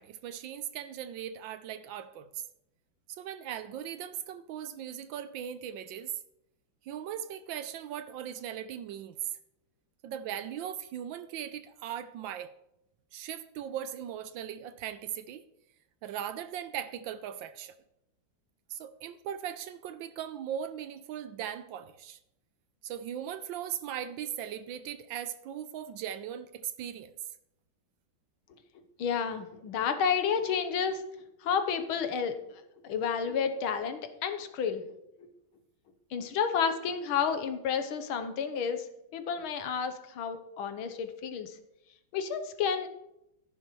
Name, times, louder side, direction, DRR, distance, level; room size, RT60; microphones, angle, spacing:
voice 1, 0.0-2.4 3.1-6.1 6.8-9.3 10.0-12.5 13.1-15.4 16.0-17.7 18.7-22.2 22.8-27.1, right 9 dB, 75° right, 1.2 m, -39 dB
voice 2, 29.0-31.0 31.4-34.8 36.1-38.8 39.1-41.6 42.1-42.9, left 7 dB, 80° left, 1.8 m, -31 dB
14.0 x 10.0 x 3.1 m
omnidirectional pair, 2.3 m